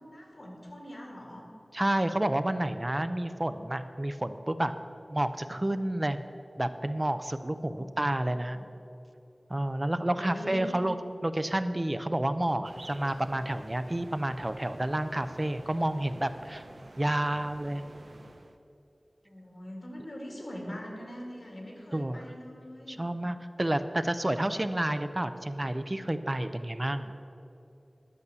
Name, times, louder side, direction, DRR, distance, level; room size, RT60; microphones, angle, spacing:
voice 1, 0.0-1.5 7.5-7.9 8.3-8.7 9.9-10.8 19.2-23.0, equal, 75° left, -1 dB, 2.2 m, -43 dB
voice 2, 1.7-4.8 5.1-6.2 6.6-8.6 9.5-10.9 11.2-16.6 17.0-17.8 21.9-22.2 22.9-27.1, right 1 dB, 30° right, 10 dB, 0.5 m, -30 dB
sound 1, 12.6-18.6, right 2 dB, 80° right, 0.6 m, -50 dB
11.0 x 6.7 x 6.8 m, 2.8 s
wide cardioid pair, 55°, 0 cm